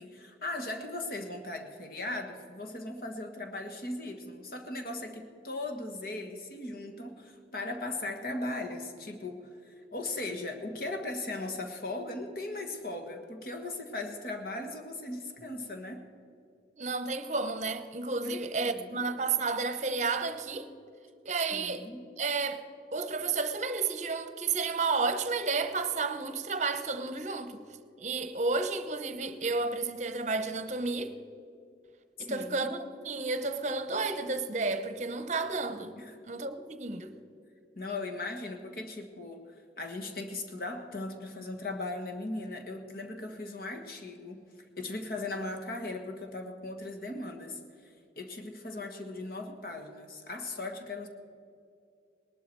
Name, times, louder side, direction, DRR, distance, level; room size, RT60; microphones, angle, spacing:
voice 1, 0.0-16.0 18.2-19.0 21.5-22.0 32.2-32.7 36.0-36.2 37.7-39.4 39.8-44.4 44.8-51.1, left 2 dB, 55° left, 1.6 m, -38 dB
voice 2, 16.8-20.7 21.2-21.9 22.2-22.6 22.9-27.6 28.0-31.2 32.2-35.9 36.2-37.2, right 4 dB, 40° right, 0.9 m, -31 dB
19.5 x 12.0 x 4.6 m
head